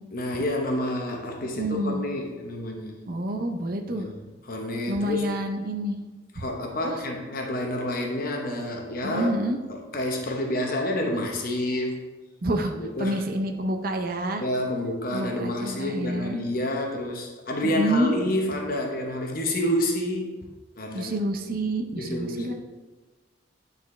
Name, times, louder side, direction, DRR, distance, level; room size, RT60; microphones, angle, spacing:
voice 1, 0.1-3.0 3.9-4.1 4.5-5.2 6.3-9.3 9.7-12.0 12.8-13.2 14.4-20.3 20.8-21.1 22.0-22.5, left 1 dB, 50° left, 1 dB, 0.9 m, -29 dB
voice 2, 1.5-2.0 3.1-4.1 4.9-6.0 6.4-6.5 6.8-7.0 9.0-9.6 12.4-12.7 13.0-14.4 15.1-16.4 17.6-18.1 20.9-22.5, right 1 dB, 50° right, 4 dB, 0.5 m, -28 dB
9.5 x 4.1 x 3.2 m, 1.2 s
head